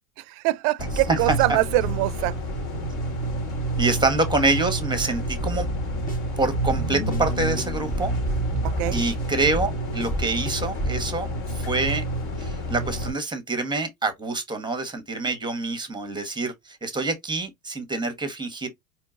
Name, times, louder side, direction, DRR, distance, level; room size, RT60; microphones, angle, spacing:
voice 1, 0.4-2.3 8.6-9.0, right 18 dB, 50° right, 0.5 m, -23 dB
sound 1, 0.8-13.1, right 1 dB, 40° left, 1.9 m, -29 dB
voice 2, 3.8-5.7 6.4-8.1 8.9-11.3 11.5-12.0 12.4-18.7, right 3 dB, 10° right, 1.2 m, -26 dB
sound 2, 5.4-11.0, right 1 dB, 20° left, 1.3 m, -30 dB
4.4 x 3.2 x 2.5 m
hypercardioid pair, 85°, 45 cm